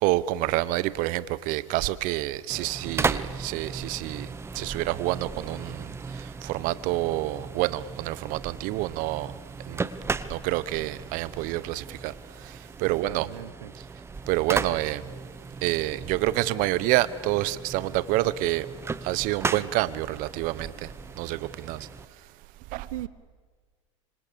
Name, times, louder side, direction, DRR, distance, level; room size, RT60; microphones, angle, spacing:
voice 1, 0.0-4.3 4.5-5.9 6.1-9.3 9.7-9.8 10.3-12.1 12.4-12.5 12.8-13.3 14.3-15.0 15.6-18.7 19.0-20.9 21.2-21.9 22.7-22.9, right 17 dB, 50° right, 1.1 m, -28 dB
sound 1, 2.5-22.1, right 4 dB, 15° right, 1.0 m, -36 dB
voice 2, 12.8-13.7 22.9-23.1, right 14 dB, 80° right, 0.8 m, -38 dB
26.0 x 25.5 x 7.0 m
hypercardioid pair, 100°, 17 cm